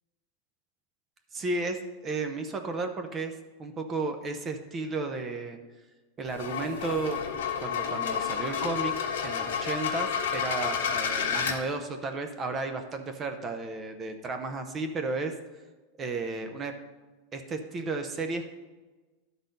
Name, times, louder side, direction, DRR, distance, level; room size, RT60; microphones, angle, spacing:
voice 1, 1.3-3.3 3.6-5.6 6.2-7.2 7.6-8.9 9.2-15.3 16.0-16.7 17.3-18.5, right 3 dB, 20° right, 6 dB, 0.6 m, -33 dB
sound 1, 6.3-11.6, left 7 dB, 90° left, 1.4 m, -30 dB
11.5 x 4.1 x 5.2 m, 1.2 s
supercardioid pair, 150°, 0 cm